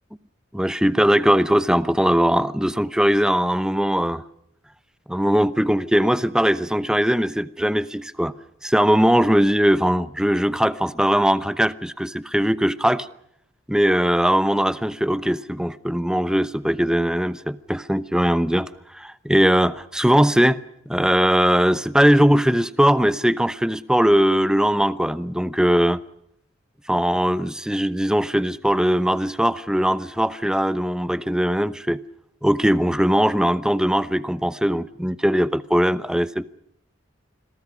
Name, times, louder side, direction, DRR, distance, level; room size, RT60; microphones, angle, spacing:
voice 1, 0.5-4.2 5.1-8.3 8.6-13.1 13.7-20.6 20.9-26.0 26.9-32.0 32.4-36.4, equal, 5° right, 0.8 m, -20 dB
28.5 x 22.0 x 6.3 m
head